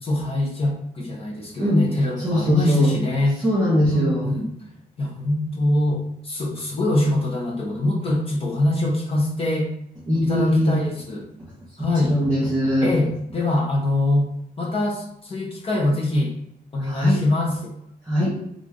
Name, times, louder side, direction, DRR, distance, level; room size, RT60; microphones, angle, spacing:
voice 1, 0.0-3.4 3.9-4.5 5.0-9.7 10.2-11.3 11.8-12.2 12.8-14.3 14.6-16.3 16.7-17.7, left 1 dB, 40° left, -1 dB, 0.9 m, -23 dB
voice 2, 2.2-2.9 3.4-4.3 10.1-10.8 11.9-12.9 16.8-17.2 18.0-18.3, equal, 5° right, -9 dB, 1.4 m, -20 dB
3.7 x 3.3 x 3.7 m, 0.74 s
wide cardioid pair, 155°, 16 cm